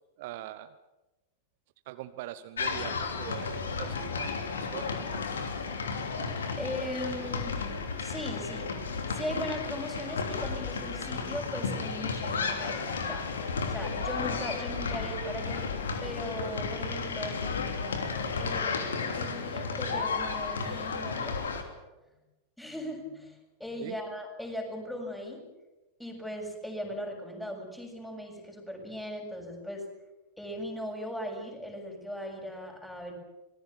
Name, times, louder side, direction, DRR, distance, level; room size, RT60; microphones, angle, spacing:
voice 1, 0.2-0.7 1.9-5.2 23.8-24.0, right 14 dB, 50° right, 12 dB, 1.0 m, -42 dB
sound 1, 2.6-21.6, left 4 dB, 70° left, 3.2 m, -33 dB
voice 2, 6.6-7.6 8.0-8.7 9.1-13.3 13.7-17.4 18.4-21.4 22.6-25.4 26.0-29.9 30.4-33.1, equal, 5° left, 1 dB, 7.3 m, -38 dB
25.5 x 20.0 x 7.5 m, 1.1 s
figure-of-eight pair, 90°, 0 cm